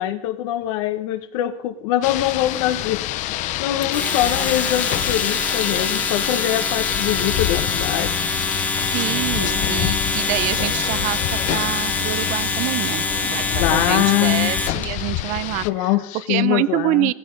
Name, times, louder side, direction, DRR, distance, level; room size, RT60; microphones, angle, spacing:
voice 1, 0.0-3.0 3.3-8.1 9.4-10.0 13.6-14.6 15.6-17.1, left 14 dB, 70° left, 8 dB, 1.1 m, -23 dB
Rain, 2.0-15.7, left 15 dB, 45° left, 0.7 m, -27 dB
Domestic sounds home sounds, 3.8-14.8, left 3 dB, 10° left, 1.1 m, -25 dB
voice 2, 8.9-17.1, right 18 dB, 50° right, 19 dB, 0.6 m, -26 dB
15.0 x 15.0 x 5.2 m, 0.66 s
supercardioid pair, 135°, 17 cm